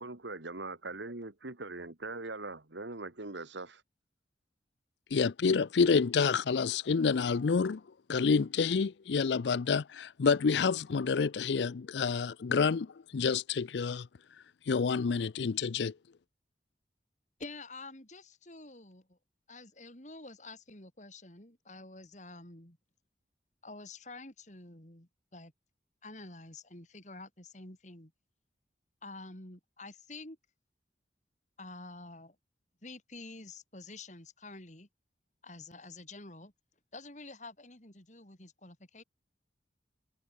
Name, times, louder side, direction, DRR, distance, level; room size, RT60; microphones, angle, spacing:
voice 1, 0.0-3.8, right 3 dB, 85° right, 2.1 m, -41 dB
voice 2, 5.1-7.8 8.1-14.1 14.7-15.9, left 5 dB, 75° left, 0.5 m, -28 dB
voice 3, 17.4-19.2 19.5-22.8 23.6-25.5 26.0-28.1 29.0-30.4 31.6-32.4 32.8-34.9 35.4-36.5 36.9-39.0, left 2 dB, 40° left, 4.5 m, -48 dB
head